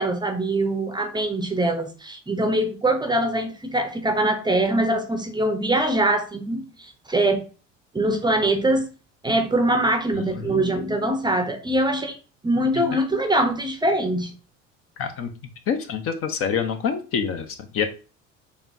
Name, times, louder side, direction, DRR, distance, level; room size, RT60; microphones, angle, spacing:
voice 1, 0.0-7.5 7.9-8.9 9.2-12.2 12.4-14.3, right 1 dB, 10° right, 0.7 m, -23 dB
voice 2, 10.1-10.7 12.7-12.8 15.0-15.3 15.7-17.8, left 7 dB, 35° left, 0.7 m, -27 dB
6.7 x 3.0 x 2.6 m
figure-of-eight pair, 60°, 38 cm